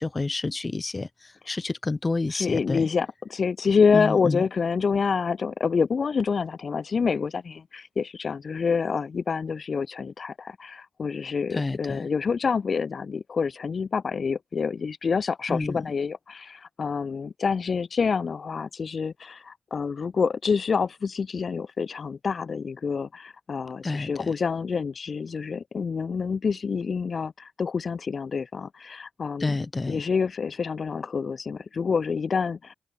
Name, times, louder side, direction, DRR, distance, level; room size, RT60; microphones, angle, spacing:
voice 1, 0.0-2.9 3.9-4.4 11.5-12.1 15.5-15.8 23.8-24.3 29.4-30.0, left 3 dB, 35° left, 2.3 m, -29 dB
voice 2, 2.3-29.5 29.9-32.7, left 5 dB, 65° left, 1.2 m, -27 dB
cardioid pair, 55°, 0 cm